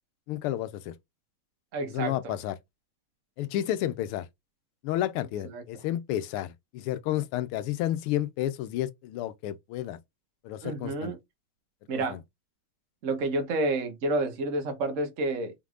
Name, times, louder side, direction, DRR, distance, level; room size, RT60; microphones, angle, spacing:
voice 1, 0.3-0.9 1.9-2.6 3.4-4.3 4.8-10.0 10.4-11.1 11.9-12.2, left 13 dB, 85° left, 1.5 m, -31 dB
voice 2, 1.7-2.3 5.4-5.6 10.6-11.2 11.9-12.2 13.0-15.5, right 2 dB, 40° right, 1.3 m, -29 dB
4.8 x 3.6 x 2.4 m
omnidirectional pair, 2.4 m